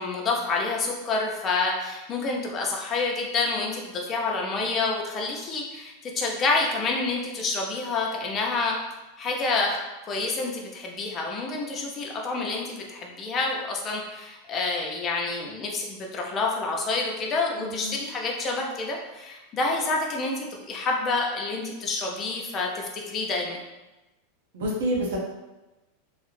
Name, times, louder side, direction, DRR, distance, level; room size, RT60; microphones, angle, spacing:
voice 1, 0.0-8.7 9.2-9.8 10.1-23.6, left 3 dB, 30° left, 0 dB, 0.5 m, -28 dB
voice 2, 17.6-17.9 24.5-25.2, equal, 80° right, -2 dB, 0.7 m, -28 dB
2.3 x 2.0 x 3.0 m, 1.1 s
supercardioid pair, 130°, 0 cm